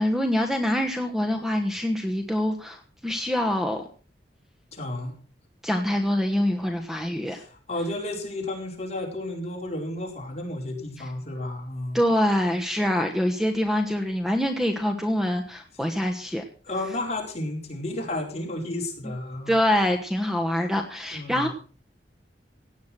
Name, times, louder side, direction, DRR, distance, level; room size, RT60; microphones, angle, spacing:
voice 1, 0.0-3.8 5.6-7.4 11.0-11.1 11.9-16.4 19.5-21.5, left 1 dB, ahead, 5 dB, 1.2 m, -25 dB
voice 2, 4.7-5.1 7.3-12.0 16.6-19.6 21.1-21.5, left 1 dB, 40° left, 0 dB, 4.5 m, -32 dB
16.5 x 9.4 x 6.0 m, 0.40 s
head